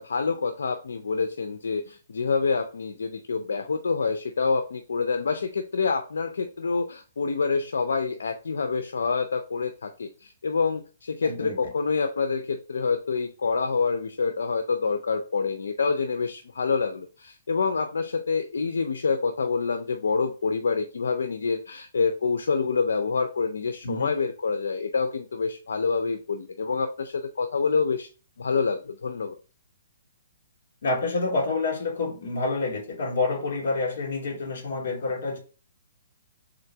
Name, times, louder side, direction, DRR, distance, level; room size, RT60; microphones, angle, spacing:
voice 1, 0.0-28.1 28.4-29.4, left 4 dB, 85° left, 6 dB, 0.5 m, -27 dB
voice 2, 11.2-11.6 23.8-24.1 30.8-35.4, left 3 dB, 60° left, 0 dB, 2.3 m, -28 dB
3.8 x 3.3 x 3.4 m, 0.35 s
hypercardioid pair, 155°, 0 cm